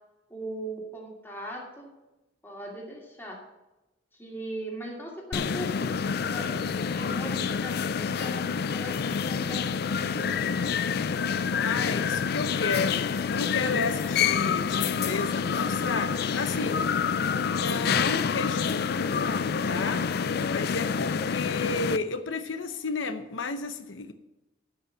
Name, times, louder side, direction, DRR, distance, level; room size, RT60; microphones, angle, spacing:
voice 1, 0.3-1.9 2.4-3.4 4.1-8.9 9.3-10.3, equal, 10° left, -2 dB, 2.6 m, -39 dB
sound 1, 5.3-22.0, left 6 dB, 55° left, 0.4 m, -27 dB
voice 2, 11.5-16.8 17.3-20.0 20.5-24.1, left 4 dB, 85° left, 8 dB, 0.8 m, -32 dB
13.0 x 5.6 x 7.3 m, 1.0 s
head